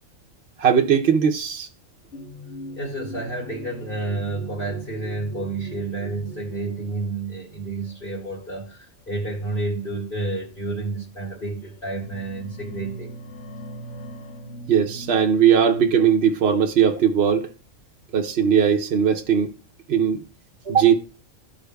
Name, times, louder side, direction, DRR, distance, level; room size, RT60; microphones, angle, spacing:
voice 1, 0.6-1.7 14.7-17.5 18.1-19.6 19.9-20.2 20.6-20.9, right 8 dB, 60° right, 0.9 m, -19 dB
sound 1, 2.1-7.3 8.1-8.4 9.5-9.6 10.4-10.5 11.2-11.6 11.9-15.2, right 1 dB, 70° left, 1.7 m, -40 dB
voice 2, 2.7-13.1, right 2 dB, 45° left, 2.1 m, -30 dB
14.0 x 5.0 x 2.2 m
omnidirectional pair, 1.3 m